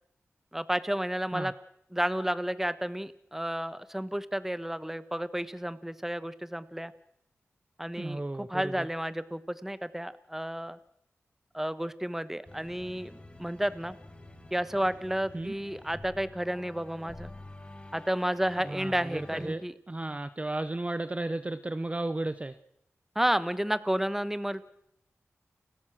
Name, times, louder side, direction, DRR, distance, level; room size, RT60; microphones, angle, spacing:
voice 1, 0.5-1.5 1.9-6.9 7.8-10.8 11.5-13.9 14.5-17.3 17.9-19.7 23.1-24.6, equal, 5° right, 14 dB, 1.2 m, -31 dB
voice 2, 8.0-8.9 15.3-15.5 18.6-19.6 19.9-22.6, right 2 dB, 25° right, 12 dB, 0.9 m, -34 dB
sound 1, 12.5-19.5, left 2 dB, 20° left, 2.3 m, -48 dB
29.5 x 14.0 x 6.3 m, 0.73 s
wide cardioid pair, 70°, 5 cm